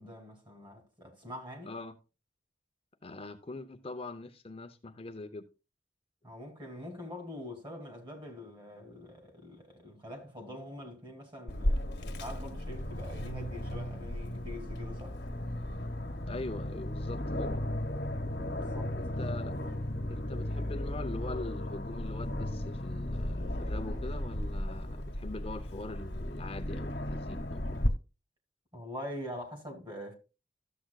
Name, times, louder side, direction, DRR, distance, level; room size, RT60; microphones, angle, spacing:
voice 1, 0.0-1.7 6.2-15.2 18.3-18.9 28.7-30.1, left 1 dB, 25° right, 2.5 m, -44 dB
voice 2, 3.0-5.5 16.3-17.6 19.0-19.5 20.1-27.8, left 2 dB, 35° left, 0.6 m, -42 dB
Aircraft, 11.5-27.9, left 1 dB, 70° left, 1.3 m, -35 dB
13.0 x 7.6 x 2.3 m
head